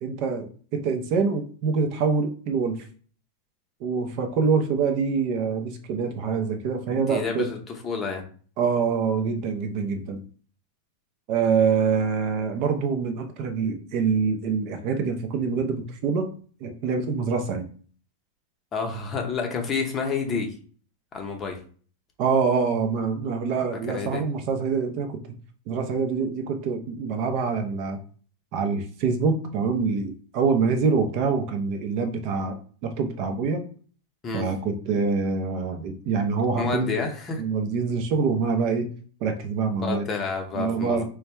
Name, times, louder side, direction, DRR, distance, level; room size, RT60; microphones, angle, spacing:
voice 1, 0.0-2.8 3.8-7.5 8.6-10.2 11.3-16.3 16.6-17.7 22.2-25.1 25.7-28.0 28.5-32.6 32.8-33.6 34.3-37.0 37.4-38.9 39.2-40.0 40.5-41.0, right 5 dB, 40° right, 5 dB, 0.6 m, -25 dB
voice 2, 6.9-8.2 18.7-20.5 21.1-21.6 23.9-24.2 34.2-34.4 36.6-37.4 39.8-41.0, left 5 dB, 20° left, 2 dB, 0.7 m, -29 dB
4.5 x 2.2 x 3.3 m, 0.43 s
supercardioid pair, 160°, 0 cm